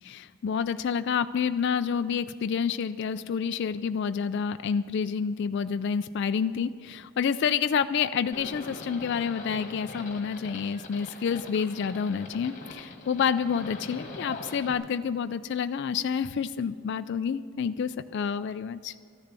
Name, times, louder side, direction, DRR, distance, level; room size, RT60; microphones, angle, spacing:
voice 1, 0.0-18.9, left 6 dB, 55° left, 10 dB, 0.3 m, -29 dB
Livestock farm animals working animals, 8.3-14.7, left 2 dB, 35° left, 1.6 m, -42 dB
13.5 x 10.0 x 6.7 m, 2.2 s
head